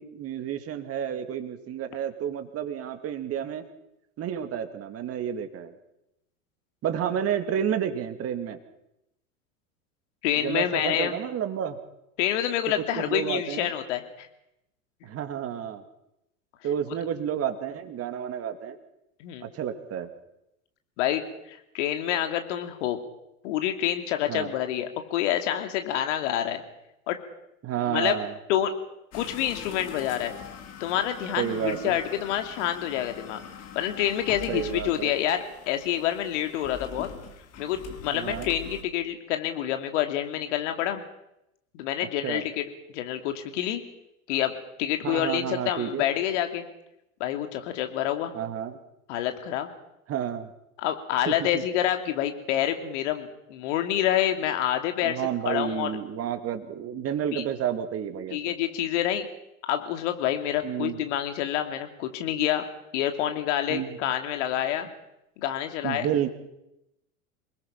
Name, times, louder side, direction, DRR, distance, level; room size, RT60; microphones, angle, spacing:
voice 1, 0.0-3.7 4.2-5.7 6.8-8.6 10.4-11.8 13.0-13.7 15.0-15.8 16.6-18.8 19.4-20.1 24.3-24.5 27.6-28.3 31.4-32.0 34.5-35.1 38.1-38.5 42.2-42.4 45.0-46.0 48.3-48.8 50.1-50.5 51.3-51.6 55.0-58.6 60.6-61.0 63.7-64.0 65.8-66.3, right 9 dB, 30° right, 8 dB, 2.4 m, -30 dB
voice 2, 10.2-11.2 12.2-14.3 19.2-19.5 21.0-21.2 21.5-23.0 23.4-26.6 27.1-27.2 27.8-28.2 28.5-28.7 29.1-30.4 30.8-33.4 33.7-37.1 37.6-41.0 41.7-42.6 42.9-43.8 44.3-44.5 44.8-46.6 47.2-48.3 49.1-49.7 50.8-55.2 55.4-55.9 57.3-57.4 58.3-59.3 59.7-62.6 62.9-64.9 65.4-66.1, left 11 dB, 55° left, 6 dB, 2.9 m, -27 dB
sound 1, 29.1-38.8, left 7 dB, 35° left, 2.8 m, -43 dB
28.0 x 20.0 x 5.8 m, 0.85 s
figure-of-eight pair, 85°, 43 cm